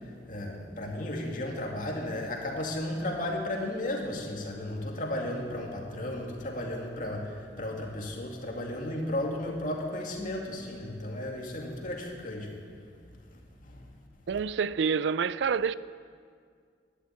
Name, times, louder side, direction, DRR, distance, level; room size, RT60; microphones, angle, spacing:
voice 1, 0.3-12.6 13.6-13.9, left 1 dB, 45° left, 2.3 m, -34 dB
voice 2, 14.3-15.7, right 6 dB, 75° right, 0.4 m, -27 dB
12.0 x 11.5 x 8.7 m
head